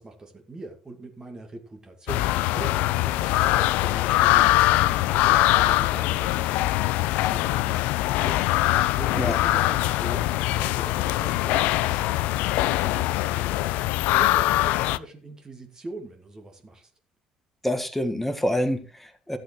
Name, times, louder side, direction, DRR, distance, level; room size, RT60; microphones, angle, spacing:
voice 1, 0.0-12.0 12.7-16.9, right 2 dB, 25° right, 2.3 m, -42 dB
sound 1, 2.1-15.0, left 16 dB, 60° left, 0.4 m, -22 dB
voice 2, 17.6-19.4, equal, 5° left, 1.6 m, -27 dB
14.5 x 7.6 x 3.2 m
figure-of-eight pair, 55°, 3 cm